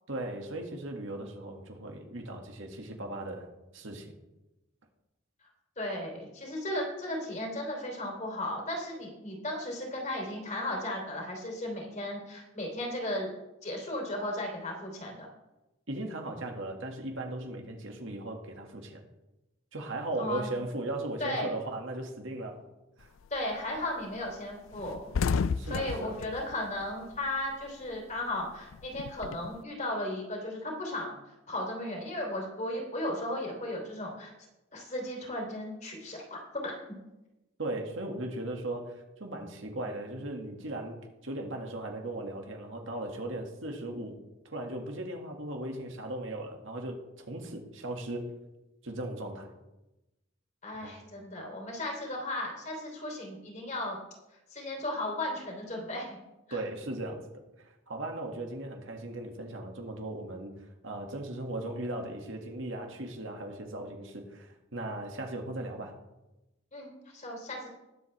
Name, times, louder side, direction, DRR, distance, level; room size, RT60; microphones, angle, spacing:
voice 1, 0.1-3.5 3.7-4.1 15.9-19.0 19.7-22.6 23.0-23.1 25.6-26.2 37.6-44.2 44.5-48.3 48.8-49.5 50.8-51.0 56.5-57.3 57.6-60.5 60.8-65.9, right 1 dB, 75° right, 2 dB, 1.9 m, -37 dB
voice 2, 5.8-13.3 13.6-15.3 20.2-20.5 21.2-21.6 23.3-25.2 25.6-31.1 31.5-34.3 34.7-37.0 50.6-54.0 54.5-56.2 56.5-56.6 66.7-67.7, left 1 dB, 40° left, 0 dB, 3.2 m, -35 dB
sound 1, 23.0-23.4 23.8-23.9 24.2-24.3 24.6-27.6 27.9-29.6, left 5 dB, 85° left, 0.4 m, -33 dB
20.5 x 7.8 x 3.4 m, 1.0 s
head